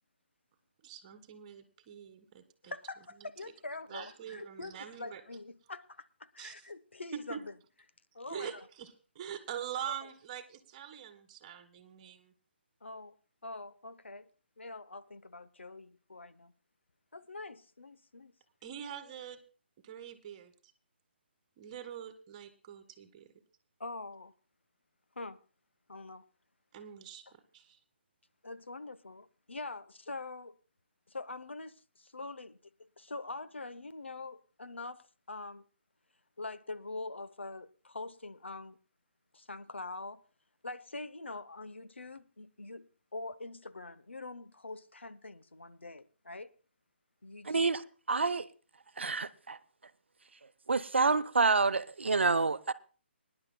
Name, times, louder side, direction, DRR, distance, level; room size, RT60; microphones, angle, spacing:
voice 1, 0.8-2.7 3.2-3.5 3.9-5.2 6.4-6.7 7.1-7.4 8.3-12.3 18.6-19.4 19.8-20.5 21.6-23.3 26.7-27.8, right 9 dB, 30° right, 1.6 m, -44 dB
voice 2, 2.6-7.5 8.1-8.6 9.8-10.1 12.8-13.2 13.4-14.3 14.6-16.5 17.1-18.3 23.8-24.3 25.2-25.4 25.9-26.2 28.4-30.6 31.1-35.0 35.3-35.6 36.4-38.8 39.3-40.2 40.6-46.5 47.2-47.6, left 3 dB, 90° left, 0.7 m, -44 dB
voice 3, 47.4-47.8 48.1-48.5 49.0-49.6 50.7-52.7, right 4 dB, 80° right, 0.7 m, -28 dB
24.5 x 11.0 x 2.2 m
figure-of-eight pair, 145°, 6 cm